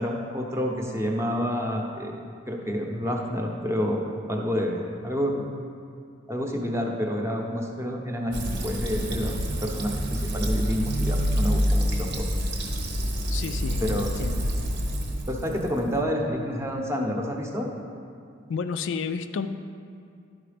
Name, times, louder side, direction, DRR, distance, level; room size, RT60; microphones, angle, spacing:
voice 1, 0.0-2.2 2.5-4.0 4.3-5.5 6.3-9.4 9.6-12.3 13.8-14.1 15.3-17.7, equal, 15° right, 1 dB, 0.8 m, -28 dB
Fill (with liquid), 8.3-16.0, equal, 55° right, 1.0 m, -27 dB
voice 2, 13.3-14.5 18.5-19.5, left 5 dB, 60° left, 9 dB, 0.3 m, -31 dB
11.0 x 4.8 x 5.1 m, 2.4 s
head